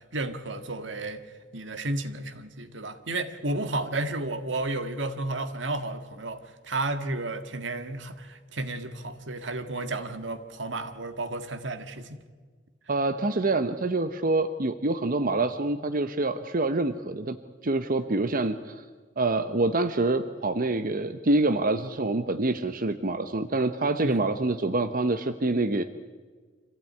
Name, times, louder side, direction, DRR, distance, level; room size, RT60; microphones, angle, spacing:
voice 1, 0.1-1.2 1.5-12.2 24.0-24.3, right 2 dB, 75° right, 9 dB, 1.7 m, -32 dB
voice 2, 12.9-17.4 17.6-18.8 19.2-25.8, right 2 dB, 50° right, 9 dB, 0.9 m, -26 dB
26.0 x 15.5 x 9.5 m, 1.5 s
head